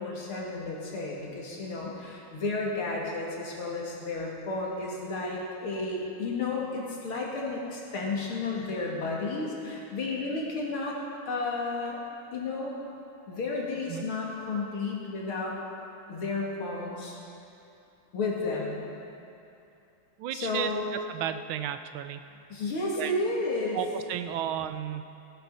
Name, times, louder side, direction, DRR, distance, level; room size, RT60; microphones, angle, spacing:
voice 1, 0.0-11.0 11.3-12.0 12.3-12.8 13.3-15.6 16.1-17.2 18.1-18.8 20.3-20.9 22.5-23.8, left 3 dB, 85° left, -3 dB, 3.1 m, -32 dB
voice 2, 20.2-20.7 21.1-22.2 23.0-23.1 23.7-25.0, right 10 dB, 80° right, 10 dB, 1.4 m, -33 dB
17.0 x 10.5 x 5.5 m, 2.7 s
omnidirectional pair, 2.3 m